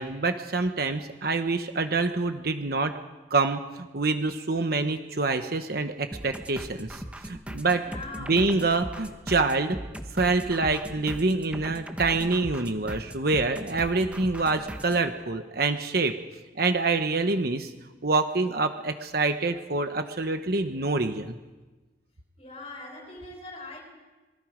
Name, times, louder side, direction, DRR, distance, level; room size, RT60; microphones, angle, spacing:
voice 1, 0.0-2.9 3.3-7.8 8.2-9.8 10.1-16.1 16.6-17.7 18.0-21.4, right 3 dB, 55° right, 7 dB, 1.2 m, -26 dB
sound 1, 6.1-15.0, equal, 5° right, 1.1 m, -39 dB
voice 2, 7.8-8.6 22.4-23.8, left 2 dB, 35° left, 1 dB, 6.6 m, -41 dB
26.5 x 22.0 x 5.2 m, 1.2 s
head